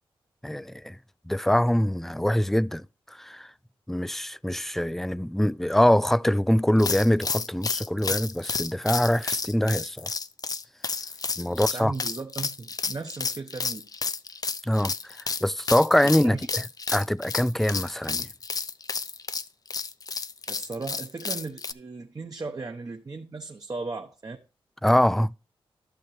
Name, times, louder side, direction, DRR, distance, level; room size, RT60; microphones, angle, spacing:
voice 1, 0.4-1.0 1.3-3.5 3.9-10.1 11.4-11.9 14.6-16.7 16.9-18.3 24.8-25.3, left 1 dB, 5° left, 0.3 m, -24 dB
sound 1, 6.8-21.7, left 4 dB, 40° left, 0.6 m, -31 dB
voice 2, 11.5-13.8 16.2-16.4 20.5-24.4, right 3 dB, 40° right, 1.0 m, -36 dB
11.5 x 6.7 x 3.2 m
cardioid pair, 55°, 10 cm